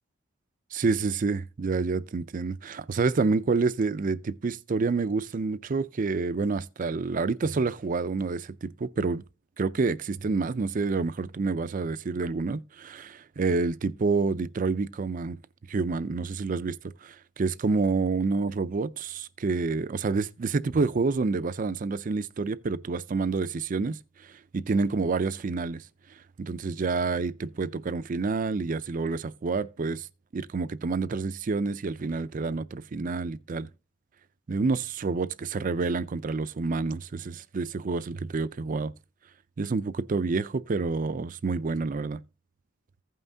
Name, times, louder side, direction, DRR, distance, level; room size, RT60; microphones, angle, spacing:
voice 1, 0.7-9.2 9.6-15.4 15.7-16.8 17.0-24.0 24.5-25.8 26.4-30.1 30.3-33.7 34.5-38.9 39.6-42.2, right 4 dB, 45° right, 0.4 m, -28 dB
15.5 x 5.6 x 2.7 m
head